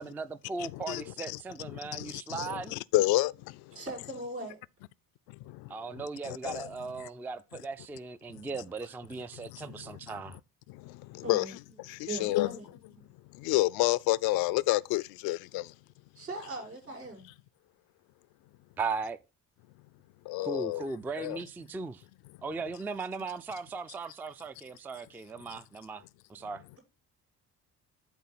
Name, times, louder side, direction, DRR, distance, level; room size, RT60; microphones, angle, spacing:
voice 1, 0.0-2.8 5.7-10.4 18.8-19.2 20.4-22.0 22.4-26.0 26.3-26.6, right 4 dB, 5° right, 0.3 m, -38 dB
voice 2, 0.6-1.4 1.7-3.7 5.4-6.7 9.5-10.0 10.7-12.5 13.3-15.7 20.3-20.8 21.2-21.4, left 18 dB, 55° left, 0.5 m, -30 dB
voice 3, 3.7-4.6 11.2-11.5 12.1-12.7 16.1-17.3, right 2 dB, 85° right, 5.6 m, -39 dB
11.5 x 3.9 x 4.0 m
figure-of-eight pair, 50°, 46 cm